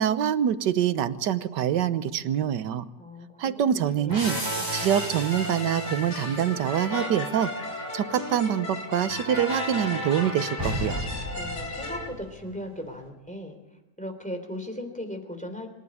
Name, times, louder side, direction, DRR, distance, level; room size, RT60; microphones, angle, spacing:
voice 1, 0.0-2.8 3.4-7.5 7.9-11.0, right 9 dB, 80° right, 13 dB, 1.6 m, -25 dB
voice 2, 3.0-4.7 11.3-13.6 14.0-15.7, left 1 dB, 5° left, 4 dB, 3.4 m, -38 dB
sound 1, 4.1-12.6, equal, 10° right, 4.9 m, -34 dB
sound 2, 4.7-12.1, left 2 dB, 65° left, 3.5 m, -36 dB
26.5 x 12.0 x 9.7 m, 0.96 s
omnidirectional pair, 1.8 m